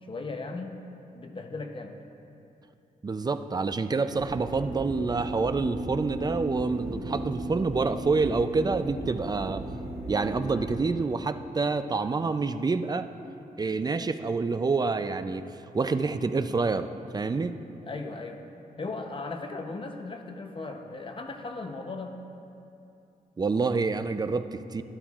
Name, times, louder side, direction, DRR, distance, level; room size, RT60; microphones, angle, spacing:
voice 1, 0.0-0.8 1.1-1.9 17.8-18.4 18.8-22.2, left 3 dB, 35° left, 4 dB, 0.7 m, -37 dB
voice 2, 3.0-9.6 10.1-13.1 13.6-15.5 15.7-17.6 23.4-24.8, right 4 dB, 25° right, 10 dB, 0.4 m, -27 dB
sound 1, 4.1-10.6, right 1 dB, 45° right, 1.6 m, -36 dB
12.5 x 12.5 x 2.4 m, 2.7 s
wide cardioid pair, 110°, 15 cm